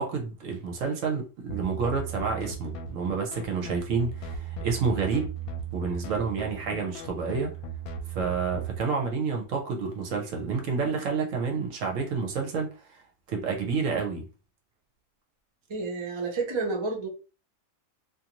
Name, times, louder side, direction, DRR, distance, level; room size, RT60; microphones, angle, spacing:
voice 1, 0.0-5.3 5.7-7.5 8.1-13.0 13.3-14.3, right 5 dB, 65° right, 0.9 m, -29 dB
sound 1, 1.5-8.8, right 5 dB, 80° left, 1.0 m, -37 dB
voice 2, 15.7-17.1, right 3 dB, 30° right, 0.5 m, -30 dB
2.5 x 2.5 x 2.8 m
omnidirectional pair, 1.5 m